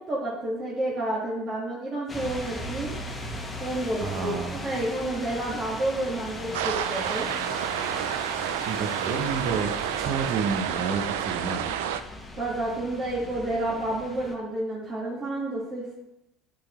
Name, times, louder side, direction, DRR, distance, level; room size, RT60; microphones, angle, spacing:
voice 1, 0.1-2.9 3.6-7.3 12.4-16.0, right 1 dB, 35° right, -6 dB, 1.7 m, -30 dB
sound 1, 2.1-14.3, left 2 dB, 25° left, 1.2 m, -38 dB
voice 2, 4.0-4.9 8.7-11.6, right 5 dB, 55° right, 3 dB, 0.7 m, -30 dB
sound 2, 6.5-12.0, right 10 dB, 85° right, 0.3 m, -29 dB
8.5 x 4.0 x 3.1 m, 0.88 s
hypercardioid pair, 80°, 0 cm